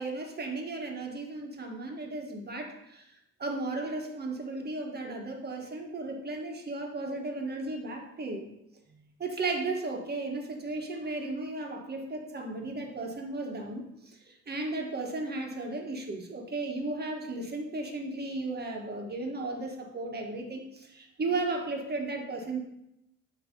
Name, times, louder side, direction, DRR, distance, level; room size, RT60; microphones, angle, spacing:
voice 1, 0.0-3.0 3.4-8.4 8.9-22.7, right 2 dB, 35° right, 2 dB, 1.5 m, -35 dB
8.8 x 3.3 x 5.3 m, 0.82 s
cardioid pair, 90°, 30 cm